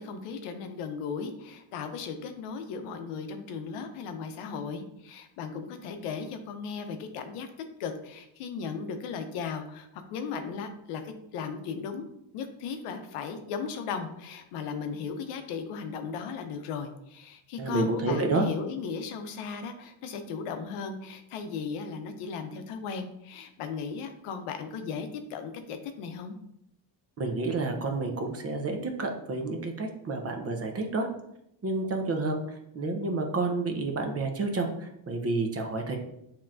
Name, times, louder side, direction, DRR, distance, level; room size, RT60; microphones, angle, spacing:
voice 1, 0.0-7.5 7.8-12.1 12.3-26.4, left 5 dB, 90° left, 7 dB, 0.8 m, -36 dB
voice 2, 17.6-18.4 27.2-31.1 31.6-36.0, right 3 dB, 30° right, 3 dB, 0.7 m, -30 dB
6.9 x 2.9 x 2.5 m, 0.79 s
cardioid pair, 120°, 50 cm